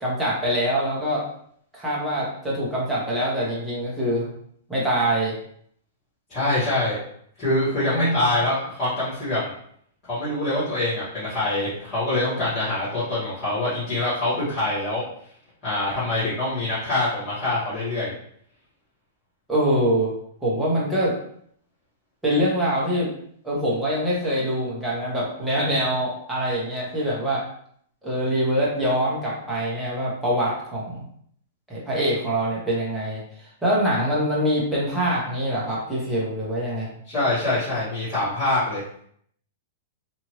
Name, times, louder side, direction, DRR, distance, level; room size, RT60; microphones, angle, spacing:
voice 1, 0.0-1.2 1.7-4.3 4.7-5.3 7.8-8.3 19.5-20.1 20.4-21.1 22.2-23.1 23.4-27.4 28.0-31.0 31.7-36.9, equal, 5° right, -7 dB, 0.8 m, -24 dB
voice 2, 6.3-7.0 7.4-9.5 10.1-15.0 15.6-18.1 37.1-38.8, left 2 dB, 15° left, -15 dB, 1.3 m, -24 dB
2.8 x 2.5 x 3.0 m, 0.65 s
hypercardioid pair, 170°, 0 cm